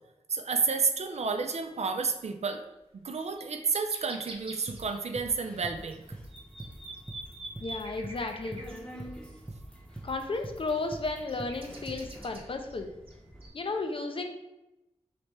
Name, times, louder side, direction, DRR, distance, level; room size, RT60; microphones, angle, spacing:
voice 1, 0.3-2.6 2.9-6.0, right 4 dB, 70° right, 7 dB, 0.5 m, -30 dB
sound 1, 1.5-1.6 2.7-2.8 3.1-5.3 5.6-5.7 5.9-8.8 10.1-12.7 13.1-13.2 13.4-13.5, right 2 dB, 50° right, 0.8 m, -45 dB
sound 2, 4.7-12.2, right 1 dB, 15° right, 0.4 m, -43 dB
Subway metro underground, 5.4-13.5, equal, 5° left, 0.8 m, -50 dB
voice 2, 7.6-8.6 10.0-12.9 13.5-14.3, left 3 dB, 50° left, 5 dB, 0.6 m, -33 dB
3.4 x 3.2 x 4.2 m, 0.95 s
wide cardioid pair, 85°, 12 cm